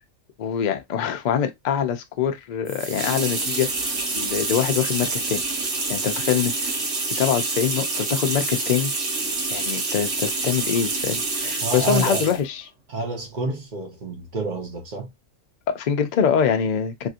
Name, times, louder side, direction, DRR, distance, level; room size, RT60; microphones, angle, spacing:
voice 1, 0.4-5.4 5.9-6.8 7.1-8.9 9.5-12.6 15.7-17.1, left 8 dB, 55° left, 0.5 m, -24 dB
sound 1, 2.7-12.4, right 3 dB, 65° right, 1.3 m, -27 dB
voice 2, 11.6-12.2 12.9-15.1, right 2 dB, 40° right, 1.1 m, -28 dB
3.1 x 2.8 x 2.4 m
omnidirectional pair, 1.4 m